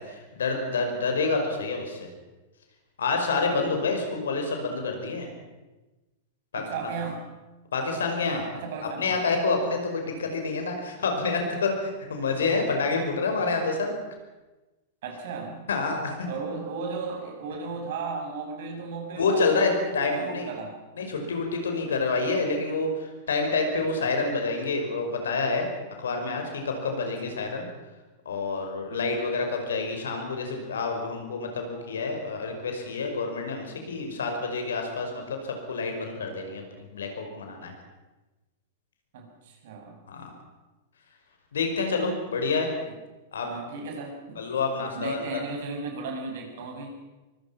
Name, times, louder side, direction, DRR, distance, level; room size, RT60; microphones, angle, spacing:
voice 1, 0.0-2.1 3.0-5.3 6.5-6.7 7.7-8.5 9.0-14.0 15.7-16.2 19.2-20.5 21.0-25.7 26.0-27.6 28.3-37.7 40.1-40.3 41.5-42.7 43.3-43.5 44.4-45.4, left 3 dB, 70° left, 4 dB, 5.6 m, -28 dB
voice 2, 3.5-4.2 6.5-7.2 8.5-9.4 10.2-10.3 15.0-15.7 16.3-20.8 24.0-24.1 27.0-27.4 28.9-29.2 39.1-40.0 43.4-44.4 44.9-46.9, right 4 dB, 55° right, 2 dB, 6.6 m, -36 dB
24.5 x 24.0 x 6.0 m, 1.1 s
figure-of-eight pair, 95°, 0 cm